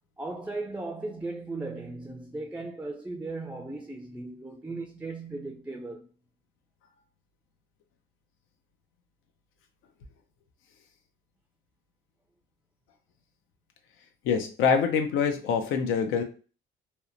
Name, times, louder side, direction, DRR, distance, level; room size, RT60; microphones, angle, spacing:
voice 1, 0.2-6.1, right 2 dB, 5° right, 0.3 m, -37 dB
voice 2, 14.2-16.2, left 6 dB, 90° left, 0.5 m, -25 dB
2.8 x 2.1 x 2.5 m
cardioid pair, 90°, 20 cm